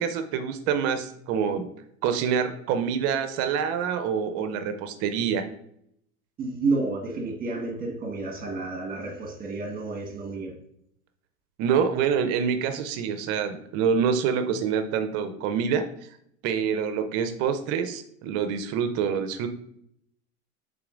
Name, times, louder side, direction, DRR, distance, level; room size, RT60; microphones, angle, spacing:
voice 1, 0.0-1.7 2.0-5.4 11.6-15.8 16.4-19.5, right 7 dB, 40° right, 9 dB, 0.5 m, -26 dB
voice 2, 6.4-10.5, right 3 dB, 20° right, 2 dB, 1.2 m, -30 dB
5.8 x 3.8 x 2.4 m, 0.72 s
hypercardioid pair, 110°, 42 cm